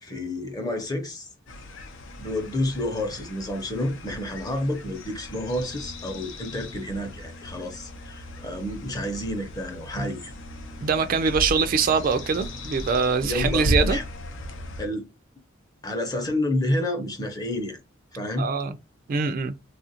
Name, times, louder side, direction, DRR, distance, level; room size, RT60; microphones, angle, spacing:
voice 1, 0.0-1.3 2.2-10.3 13.2-14.0 14.8-15.1 15.8-17.8 18.1-18.5, left 1 dB, 20° left, 0.7 m, -29 dB
sound 1, 1.5-14.8, left 1 dB, 85° left, 0.7 m, -35 dB
voice 2, 10.8-14.0 18.4-18.8 19.1-19.5, right 5 dB, 45° right, 0.3 m, -23 dB
3.4 x 2.4 x 2.7 m
head